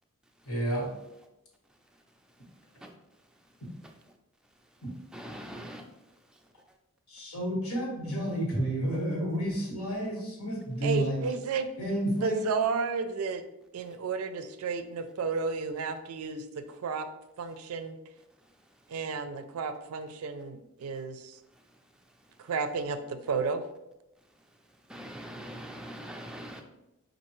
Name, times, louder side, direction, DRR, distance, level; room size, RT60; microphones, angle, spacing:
voice 1, 0.5-0.9 7.1-11.2 11.8-12.4, right 1 dB, 75° left, -2 dB, 1.4 m, -30 dB
voice 2, 5.1-5.8 24.9-26.6, equal, 5° right, 2 dB, 0.4 m, -42 dB
voice 3, 10.8-11.7 12.2-13.4 13.7-17.1 17.4-18.0 18.9-21.4 22.4-23.6, right 5 dB, 80° right, 10 dB, 0.4 m, -32 dB
5.5 x 2.5 x 3.1 m, 0.92 s
head